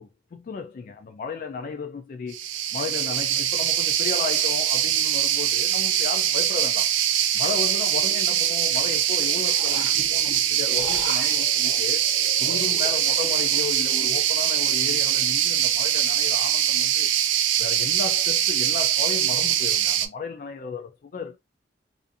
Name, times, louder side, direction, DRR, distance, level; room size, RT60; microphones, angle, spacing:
voice 1, 0.0-2.4 2.7-7.0 7.3-12.1 12.4-17.1 17.6-21.4, left 5 dB, 45° left, 0.3 m, -34 dB
sound 1, 2.3-20.1, right 10 dB, 85° right, 0.4 m, -23 dB
sound 2, 5.7-5.8 8.6-14.1, left 2 dB, 85° left, 1.1 m, -39 dB
2.5 x 2.4 x 2.5 m
head